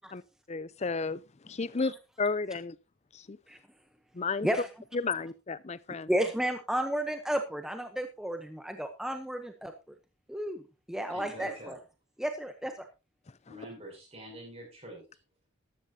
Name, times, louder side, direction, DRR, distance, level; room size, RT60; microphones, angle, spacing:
voice 1, 0.5-2.8 3.1-3.4 4.1-4.5 4.9-6.1, left 4 dB, 35° left, 0.6 m, -33 dB
voice 2, 6.1-9.7 10.3-10.6 10.9-11.8 12.2-12.9, equal, 5° right, 0.8 m, -32 dB
voice 3, 11.1-11.8 13.5-15.0, right 1 dB, 30° right, 7.2 m, -45 dB
13.5 x 12.5 x 2.8 m
head